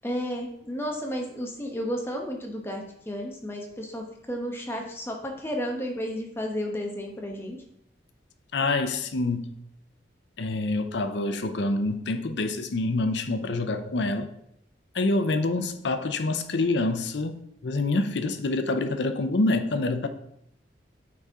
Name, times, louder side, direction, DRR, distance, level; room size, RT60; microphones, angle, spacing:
voice 1, 0.0-7.6, equal, 15° left, 1 dB, 1.0 m, -32 dB
voice 2, 8.5-9.5 10.4-14.3 14.9-20.1, left 2 dB, 75° left, 9 dB, 0.6 m, -26 dB
8.7 x 4.2 x 3.6 m, 0.76 s
head